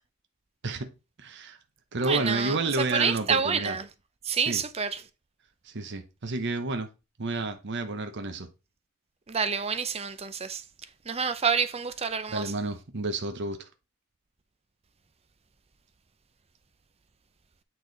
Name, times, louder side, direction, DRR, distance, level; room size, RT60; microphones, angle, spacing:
voice 1, 1.2-1.6 1.9-3.8 4.3-4.6 5.6-6.9 7.2-8.5 12.3-13.7, right 2 dB, 55° right, 0.9 m, -30 dB
voice 2, 2.0-3.9 4.2-5.0 9.3-10.6 11.1-12.5, right 6 dB, 30° right, 0.6 m, -28 dB
8.4 x 4.5 x 3.9 m
head